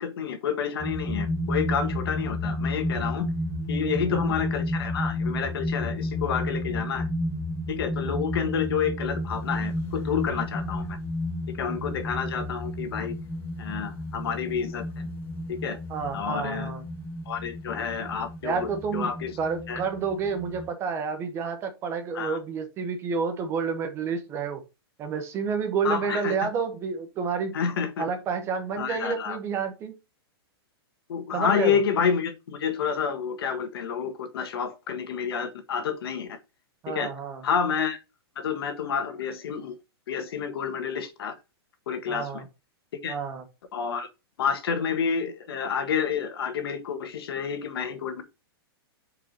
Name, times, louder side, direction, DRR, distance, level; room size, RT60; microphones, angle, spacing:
voice 1, 0.0-3.3 3.7-7.1 7.7-11.0 11.5-13.2 13.6-15.1 15.5-15.8 16.1-16.7 17.2-19.3 19.7-19.8 22.1-22.4 25.8-26.3 27.5-28.0 28.8-29.4 31.1-36.4 36.9-37.1 37.4-38.0 38.3-39.8 40.1-41.3 41.9-42.5 43.0-43.1 43.7-44.1 44.4-48.2, left 7 dB, 70° left, 1.6 m, -29 dB
guitar open E Paulstretch, 0.8-20.7, left 1 dB, 20° left, 1.8 m, -32 dB
voice 2, 3.8-4.3 15.9-16.8 18.4-19.1 19.4-24.6 25.0-27.6 28.0-29.9 31.3-31.8 36.8-37.4 42.1-42.5 43.1-43.4, right 5 dB, 20° right, 1.0 m, -30 dB
4.8 x 4.5 x 5.1 m
hypercardioid pair, 165°, 13 cm